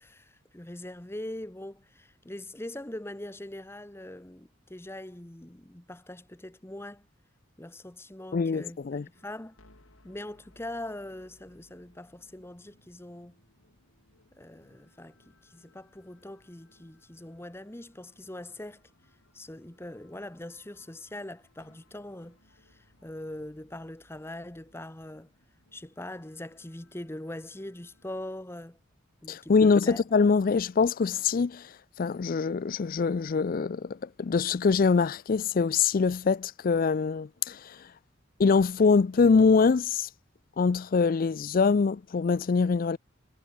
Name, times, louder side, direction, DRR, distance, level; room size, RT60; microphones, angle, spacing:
voice 1, 0.0-7.0 7.6-8.8 9.1-9.6 10.0-13.4 14.4-18.8 19.3-25.3 25.7-28.8 29.2-30.0, left 1 dB, 10° left, 0.9 m, -42 dB
voice 2, 8.3-9.1 29.3-37.9 38.4-40.1 40.6-43.0, left 5 dB, 45° left, 0.4 m, -24 dB
sound 1, 9.1-28.2, left 2 dB, 80° left, 4.0 m, -64 dB
head